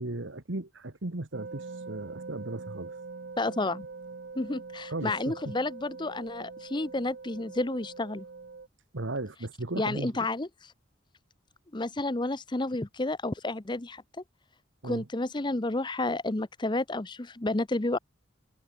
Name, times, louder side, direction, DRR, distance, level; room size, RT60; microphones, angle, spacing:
voice 1, 0.0-3.0 4.9-5.5 8.9-10.1 14.8-15.0, right 2 dB, 70° right, 1.7 m, -36 dB
sound 1, 1.3-8.7, right 4 dB, 55° right, 0.6 m, -43 dB
voice 2, 3.4-3.8 4.4-8.3 9.7-10.7 11.7-14.0 14.8-18.0, left 2 dB, 25° left, 0.8 m, -31 dB
head